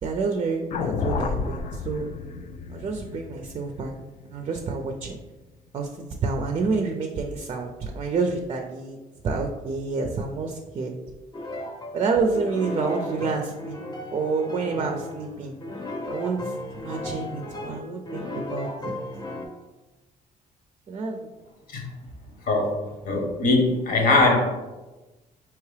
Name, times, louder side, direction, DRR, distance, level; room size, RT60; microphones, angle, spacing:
voice 1, 0.0-2.1 2.7-3.9 4.3-5.1 5.7-9.0 9.2-10.9 11.9-13.8 14.1-15.5 16.0-18.9 20.9-21.3, right 4 dB, 40° right, 4 dB, 0.4 m, -28 dB
sound 1, 0.7-5.0, left 5 dB, 50° left, 0.4 m, -31 dB
sound 2, 11.3-12.0 12.3-19.5, left 1 dB, 30° left, 0.7 m, -35 dB
voice 2, 23.0-24.5, left 2 dB, 75° left, 1 dB, 1.1 m, -21 dB
4.6 x 2.9 x 3.2 m, 1.1 s
cardioid pair, 135°, 15 cm